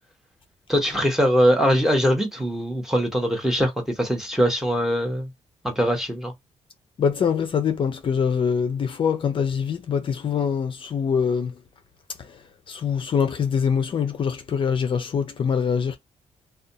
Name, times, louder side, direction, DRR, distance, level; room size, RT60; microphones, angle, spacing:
voice 1, 0.7-5.3 5.6-6.3, equal, 5° right, 0.9 m, -22 dB
voice 2, 7.0-11.6 12.2-16.0, left 6 dB, 45° left, 0.4 m, -24 dB
2.5 x 2.2 x 2.7 m
cardioid pair, 120°, 12 cm